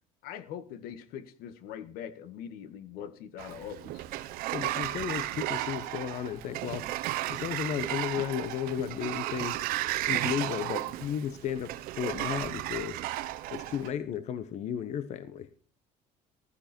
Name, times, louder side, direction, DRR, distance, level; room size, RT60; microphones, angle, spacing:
voice 1, 0.2-4.0, left 9 dB, 80° left, 1.9 m, -42 dB
Sliding door, 3.4-13.9, right 15 dB, 75° right, 1.2 m, -34 dB
voice 2, 4.5-6.9 7.3-9.6 10.1-13.0 13.5-15.5, left 9 dB, 50° left, 1.1 m, -34 dB
15.5 x 13.0 x 4.5 m
cardioid pair, 160°, 15 cm